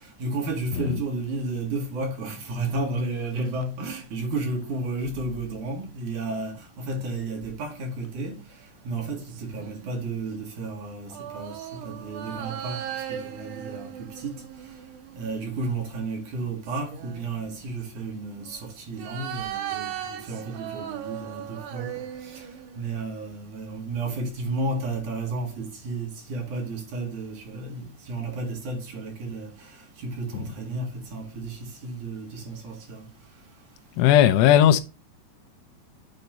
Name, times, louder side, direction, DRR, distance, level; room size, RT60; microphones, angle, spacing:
voice 1, 0.0-8.4 8.8-14.4 15.1-22.5 22.8-33.1, right 2 dB, 50° right, 3.1 m, -32 dB
sound 1, 9.0-10.2 11.1-15.5 16.3-17.5 18.4-23.0 23.3-23.4, right 10 dB, 70° right, 3.0 m, -38 dB
voice 2, 34.0-34.8, left 11 dB, 80° left, 2.7 m, -16 dB
8.2 x 4.4 x 5.2 m
omnidirectional pair, 5.4 m